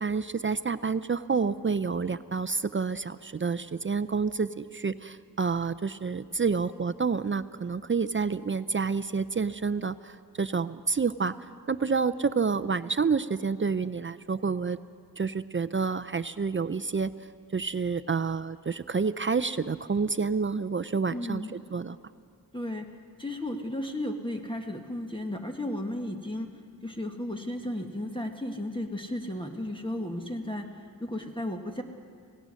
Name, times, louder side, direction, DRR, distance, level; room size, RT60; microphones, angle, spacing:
voice 1, 0.0-11.3 11.7-14.8 15.2-17.1 17.5-22.0, right 5 dB, 35° right, 14 dB, 0.4 m, -29 dB
voice 2, 21.1-21.5 22.5-22.9 23.2-26.5 26.8-31.8, left 1 dB, 15° left, 2 dB, 1.4 m, -34 dB
27.0 x 17.5 x 6.3 m, 2.2 s
wide cardioid pair, 90°, 35 cm